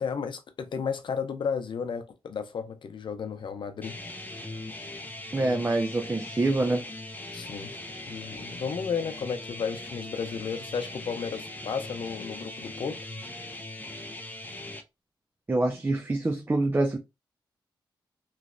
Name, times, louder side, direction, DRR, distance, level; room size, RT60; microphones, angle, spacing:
voice 1, 0.0-4.0 7.3-7.7 8.0-13.0, left 6 dB, 70° left, 0.7 m, -33 dB
sound 1, 3.8-14.8, left 1 dB, 20° left, 0.8 m, -40 dB
voice 2, 5.3-6.8 15.5-17.0, right 2 dB, 25° right, 0.6 m, -26 dB
3.2 x 3.0 x 2.6 m
cardioid pair, 80°, 9 cm